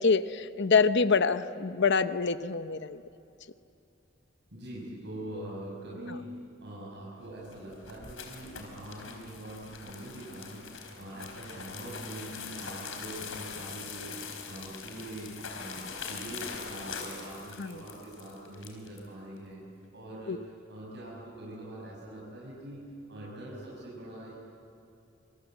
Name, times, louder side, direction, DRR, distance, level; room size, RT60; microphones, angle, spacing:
voice 1, 0.0-3.0 6.1-6.2 17.6-17.8 20.3-20.4, left 5 dB, 60° left, 11 dB, 0.9 m, -26 dB
voice 2, 4.5-19.6 19.9-22.8 23.1-24.4, right 1 dB, 60° right, -5 dB, 6.6 m, -43 dB
sound 1, 7.3-19.1, left 5 dB, 80° left, 4.2 m, -42 dB
27.0 x 26.5 x 8.1 m, 2.7 s
head